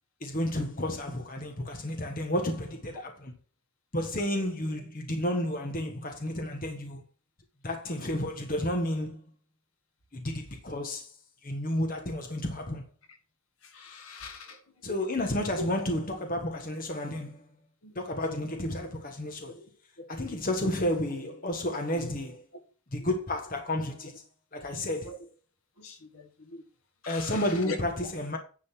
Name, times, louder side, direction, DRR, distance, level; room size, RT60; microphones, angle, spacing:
voice 1, 0.2-3.3 3.9-7.0 7.6-9.2 10.1-11.1 11.4-12.8 14.8-17.4 17.9-19.5 20.1-22.5 22.9-24.1 24.5-25.1 27.1-28.4, left 1 dB, 40° left, 1.3 m, -31 dB
voice 2, 13.7-14.6 17.8-17.9 19.6-19.7 20.0-20.1 21.9-22.1 25.1-25.2 25.8-26.3 27.1-27.3 27.7-27.8, left 4 dB, 75° left, 1.6 m, -41 dB
10.0 x 4.0 x 5.9 m
head